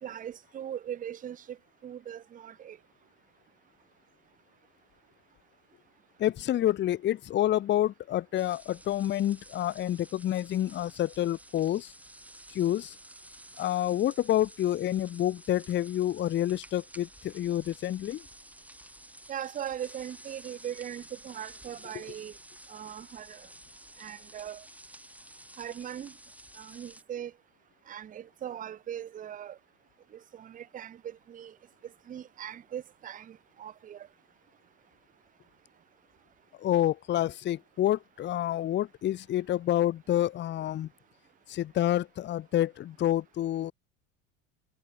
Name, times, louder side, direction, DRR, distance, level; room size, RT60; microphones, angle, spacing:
voice 1, 0.0-1.6 1.8-2.8 19.3-22.3 22.7-23.5 24.0-24.7 25.6-26.1 26.6-27.3 27.9-29.6 30.1-31.6 32.1-34.1, right 10 dB, 20° right, 0.6 m, -40 dB
voice 2, 6.2-11.9 12.5-13.0 13.6-18.3 36.6-40.9 41.5-43.7, left 12 dB, 25° left, 0.6 m, -28 dB
sound 1, 8.3-27.0, right 1 dB, 5° right, 6.2 m, -52 dB
hypercardioid pair, 95°, 41 cm